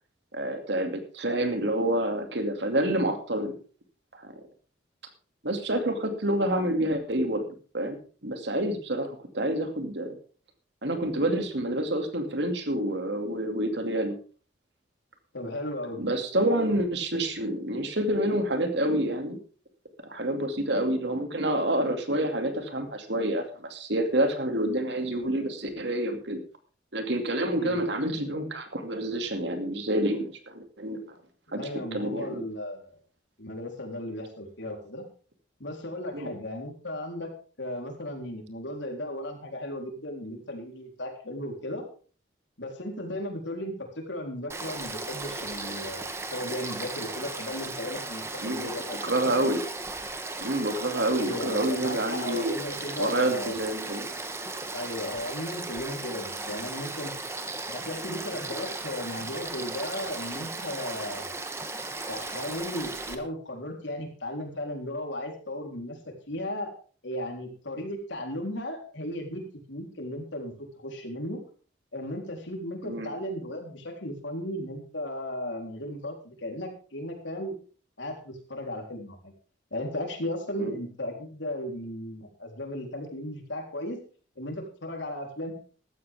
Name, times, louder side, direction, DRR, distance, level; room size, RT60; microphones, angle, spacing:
voice 1, 0.3-3.6 4.2-4.3 5.4-7.5 7.7-8.0 8.2-9.1 9.3-10.2 10.8-14.2 16.0-19.4 20.1-26.4 26.9-31.1 31.5-32.4 36.1-36.3 48.4-48.7 49.0-49.6 50.4-52.6 53.0-54.1 72.8-73.1 80.6-80.7, right 1 dB, 70° right, 6 dB, 2.6 m, -28 dB
voice 2, 15.3-16.0 27.5-27.8 31.5-33.0 33.4-35.0 35.6-37.3 37.6-41.8 42.6-49.4 51.2-53.6 54.7-57.1 57.7-61.3 62.1-66.0 66.3-66.7 67.0-69.4 69.7-71.4 71.9-77.6 78.0-79.3 79.7-84.0 84.4-85.5, left 1 dB, 80° left, 2 dB, 3.8 m, -36 dB
Frog / Stream, 44.5-63.1, right 2 dB, 15° right, 1.3 m, -36 dB
15.5 x 13.0 x 3.6 m, 0.39 s
head